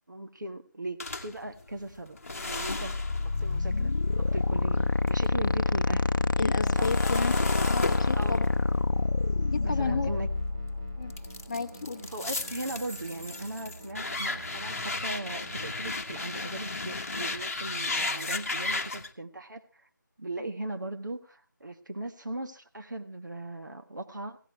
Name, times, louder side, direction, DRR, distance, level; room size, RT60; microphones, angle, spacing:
voice 1, 0.1-2.2 2.4-6.1 6.7-6.9 8.1-8.5 9.6-10.3 12.1-19.9 20.2-24.4, right 2 dB, 65° right, 7 dB, 1.5 m, -39 dB
sound 1, 1.0-5.3 5.6-10.5 11.1-19.1, left 3 dB, 45° left, 1.0 m, -35 dB
sound 2, 2.5-11.3, left 3 dB, 80° left, 0.6 m, -27 dB
sound 3, 4.1-15.6, right 2 dB, 15° right, 0.7 m, -47 dB
voice 2, 6.4-7.3 7.7-8.4 9.5-10.1 11.0-11.1 11.5-12.0, left 4 dB, 15° left, 0 dB, 1.0 m, -32 dB
17.0 x 16.0 x 3.2 m, 0.35 s
figure-of-eight pair, 165°, 11 cm